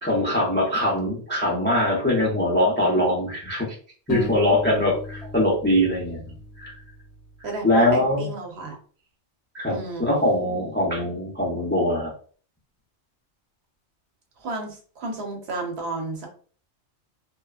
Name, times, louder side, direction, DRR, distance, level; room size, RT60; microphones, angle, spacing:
voice 1, 0.0-3.7 4.1-6.7 7.6-8.3 9.5-12.1, left 1 dB, 15° left, -4 dB, 0.4 m, -22 dB
sound 1, 4.1-7.3, left 3 dB, 70° left, 0.8 m, -36 dB
voice 2, 7.4-8.8 9.7-10.2 14.4-16.3, right 2 dB, 65° right, 0 dB, 1.0 m, -32 dB
2.9 x 2.1 x 2.3 m, 0.43 s
omnidirectional pair, 1.2 m